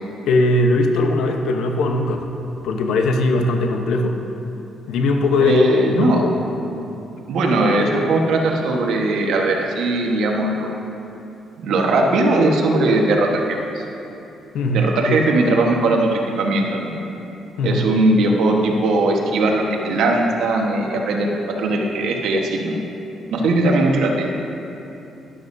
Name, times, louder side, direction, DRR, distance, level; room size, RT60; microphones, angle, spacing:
voice 1, 0.3-2.3 2.6-4.2 4.9-5.7 6.0-6.4 14.5-15.2 17.6-17.8 23.5-23.6, left 2 dB, 80° left, 4 dB, 0.9 m, -19 dB
voice 2, 5.4-6.2 7.3-10.7 11.6-13.8 14.7-17.0 17.6-21.3 21.6-22.7 23.3-24.3, right 2 dB, 80° right, 0 dB, 1.3 m, -19 dB
12.5 x 11.0 x 2.7 m, 2.9 s
cardioid pair, 90°, 0 cm